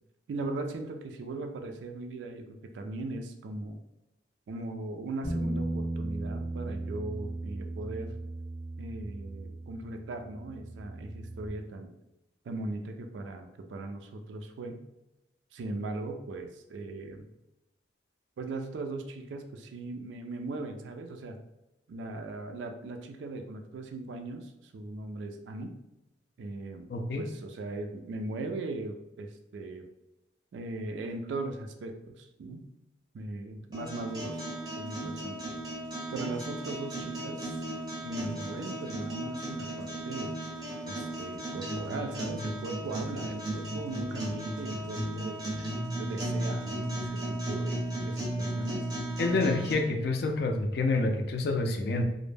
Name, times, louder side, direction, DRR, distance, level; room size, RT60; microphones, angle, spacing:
voice 1, 0.3-2.4 2.7-3.8 4.5-8.1 8.8-11.9 12.4-14.8 15.5-17.2 18.4-21.4 21.9-25.7 26.4-26.9 27.2-29.9 30.5-32.7 33.1-35.4 36.1-37.6 38.0-40.3 40.8-45.4 46.0-48.8, right 2 dB, 80° right, 5 dB, 0.3 m, -38 dB
Bass guitar, 5.2-11.5, right 2 dB, 15° left, 0.7 m, -36 dB
voice 2, 26.9-27.2 49.2-52.0, left 2 dB, 60° left, 4 dB, 0.3 m, -28 dB
sound 1, 33.7-49.7, right 1 dB, 20° right, 0.5 m, -35 dB
2.1 x 2.0 x 3.1 m, 0.94 s
head